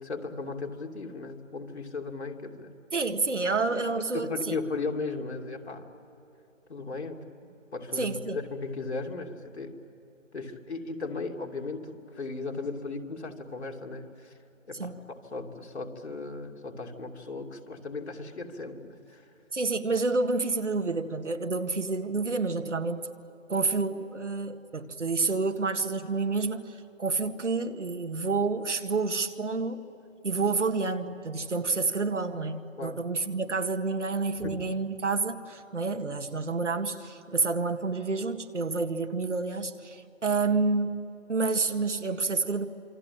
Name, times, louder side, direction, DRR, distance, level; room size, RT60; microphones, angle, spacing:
voice 1, 0.0-2.7 3.7-3.8 4.1-5.9 6.7-7.2 7.7-9.8 10.3-14.3 14.7-19.2 32.8-33.0 34.4-34.6, left 3 dB, 55° left, 2 dB, 2.9 m, -36 dB
voice 2, 2.9-4.6 8.0-8.4 14.8-15.0 19.5-23.1 23.5-29.8 30.2-41.0 41.3-42.7, right 3 dB, 65° right, 7 dB, 1.9 m, -29 dB
27.5 x 23.5 x 8.9 m, 3.0 s
figure-of-eight pair, 165°, 38 cm